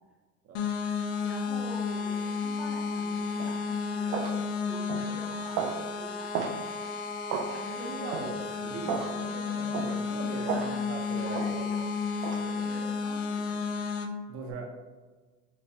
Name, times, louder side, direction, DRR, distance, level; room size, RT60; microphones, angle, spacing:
sound 1, 0.5-14.1, left 5 dB, 80° left, 0.6 m, -32 dB
voice 1, 1.2-6.4 7.5-8.1 10.2-10.8 11.1-11.9 12.4-13.8, equal, 5° right, -2 dB, 0.3 m, -46 dB
sound 2, 3.4-3.6 4.1-4.4 4.9-5.1 5.6-5.8 6.3-6.6 7.3-7.5 8.1-8.3 8.9-9.1 9.7-10.0 10.5-10.7 11.3-11.5 12.2-12.4, right 6 dB, 80° right, 0.6 m, -32 dB
voice 2, 7.8-12.0 12.2-12.9 14.3-14.7, right 3 dB, 35° right, 1 dB, 0.8 m, -40 dB
3.3 x 3.0 x 2.6 m, 1.3 s
supercardioid pair, 100°, 42 cm